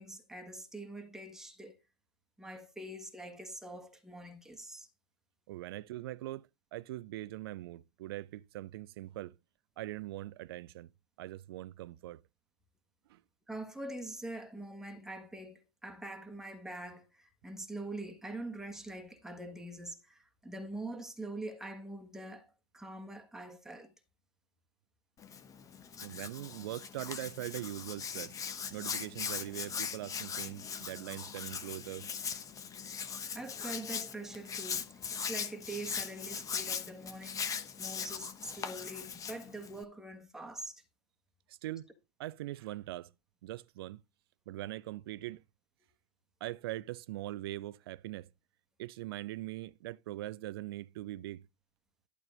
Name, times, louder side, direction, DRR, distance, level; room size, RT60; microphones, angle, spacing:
voice 1, 0.0-1.8 2.4-4.9 13.5-22.5 22.7-23.9 33.3-40.8, right 1 dB, 5° right, 1.4 m, -44 dB
voice 2, 5.5-6.5 6.7-9.4 9.8-10.9 11.2-12.2 13.1-13.2 26.0-28.3 28.7-32.1 41.5-41.9 42.2-43.1 43.4-44.0 44.5-45.4 46.4-48.3 48.8-51.4, right 15 dB, 60° right, 0.4 m, -41 dB
Hands, 25.2-39.8, left 7 dB, 25° left, 0.9 m, -40 dB
11.0 x 3.8 x 5.0 m
figure-of-eight pair, 85°, 14 cm